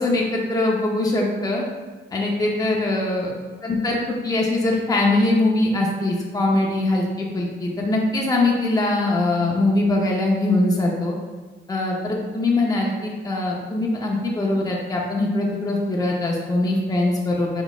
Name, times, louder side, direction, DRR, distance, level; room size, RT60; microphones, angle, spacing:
voice 1, 0.0-1.6 2.1-3.3 3.6-4.0 4.2-11.2 11.7-17.6, left 2 dB, 20° left, -2 dB, 0.7 m, -22 dB
4.0 x 4.0 x 2.3 m, 1.3 s
cardioid pair, 90°, 20 cm